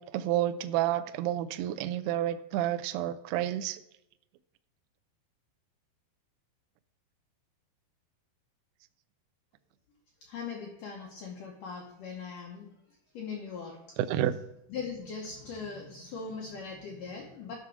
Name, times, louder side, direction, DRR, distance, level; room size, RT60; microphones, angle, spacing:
voice 1, 0.0-3.8 14.0-14.3, right 12 dB, 85° right, 9 dB, 2.3 m, -30 dB
voice 2, 10.2-12.7 13.1-14.0 14.7-17.5, left 5 dB, 80° left, 0 dB, 1.9 m, -40 dB
12.0 x 6.0 x 4.6 m, 0.84 s
omnidirectional pair, 5.1 m